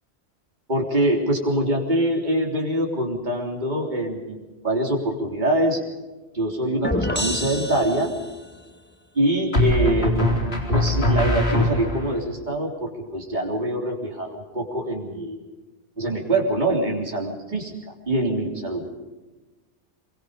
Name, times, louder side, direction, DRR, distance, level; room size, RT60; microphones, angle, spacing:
voice 1, 0.7-5.8 6.3-8.1 9.2-10.4 10.7-15.4 16.0-17.7 18.1-18.9, right 1 dB, 40° right, 0 dB, 3.8 m, -24 dB
sound 1, 6.8-8.5, left 1 dB, 10° left, 1.3 m, -28 dB
sound 2, 6.9-7.4 9.5-12.2, left 1 dB, 60° left, 4.2 m, -22 dB
25.0 x 24.0 x 5.2 m, 1.2 s
omnidirectional pair, 1.2 m